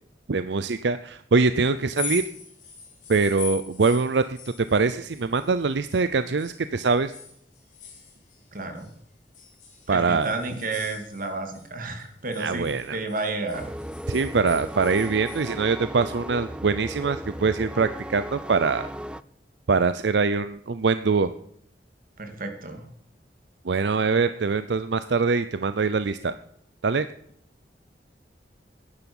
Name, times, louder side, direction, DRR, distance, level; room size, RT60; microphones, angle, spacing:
voice 1, 0.3-2.2 3.1-7.1 9.9-10.3 12.4-13.0 14.1-18.9 19.7-21.3 23.6-26.3 26.8-27.1, right 4 dB, 80° right, 12 dB, 0.6 m, -23 dB
sound 1, 1.8-6.1 6.4-8.9 9.3-11.7 12.0-15.5, left 6 dB, 45° left, 3.7 m, -41 dB
voice 2, 8.5-8.9 9.9-13.7 22.2-22.9, right 3 dB, 50° right, 5 dB, 2.7 m, -31 dB
sound 2, 13.5-19.2, equal, 5° right, 0.4 m, -36 dB
10.5 x 10.5 x 7.2 m, 0.67 s
head